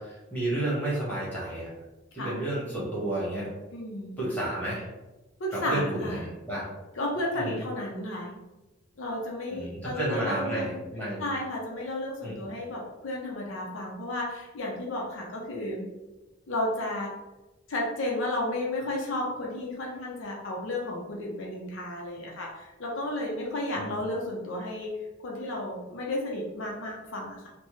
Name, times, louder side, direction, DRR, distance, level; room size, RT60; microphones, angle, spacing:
voice 1, 0.0-1.7 2.1-3.5 4.2-4.9 5.5-6.6 7.3-7.6 9.5-11.3 12.2-12.5 23.7-24.0, right 1 dB, 10° left, -8 dB, 1.1 m, -31 dB
voice 2, 3.7-4.3 5.4-6.3 7.0-8.4 9.0-10.8 11.2-15.9 16.5-17.1 17.7-24.9 25.2-27.5, left 1 dB, 70° left, -2 dB, 0.6 m, -33 dB
3.3 x 2.0 x 3.1 m, 1.1 s
head